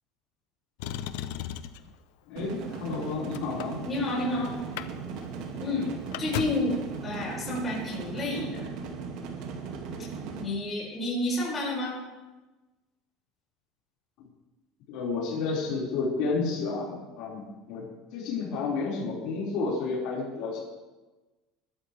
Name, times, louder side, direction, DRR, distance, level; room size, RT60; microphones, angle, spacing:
Motor vehicle (road), 0.8-1.9 2.7-4.3 4.6-4.9 5.2-5.3 5.6-6.8 7.8-7.9, left 11 dB, 80° left, 0.7 m, -36 dB
voice 1, 2.3-3.8 14.9-17.8 18.1-20.6, left 4 dB, 65° left, -5 dB, 4.9 m, -31 dB
sound 1, 2.4-10.4, right 5 dB, 65° right, 2.1 m, -38 dB
voice 2, 3.8-4.5 5.6-8.7 10.4-12.0, left 1 dB, 20° left, -5 dB, 5.7 m, -30 dB
21.0 x 12.5 x 3.4 m, 1.2 s
cardioid pair, 150°, 0 cm